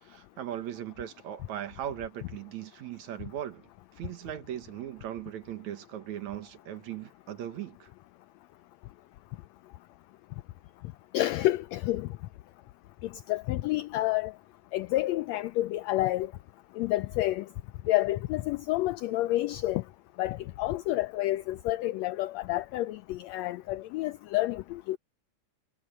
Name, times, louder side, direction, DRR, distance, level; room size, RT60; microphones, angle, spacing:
voice 1, 0.0-3.6 4.0-7.9, right 11 dB, 70° right, 2.6 m, -38 dB
voice 2, 11.1-12.1 13.3-14.3 14.7-16.3 16.8-17.5 17.9-19.8 20.2-25.0, left 16 dB, 90° left, 1.5 m, -29 dB
omnidirectional pair, 3.6 m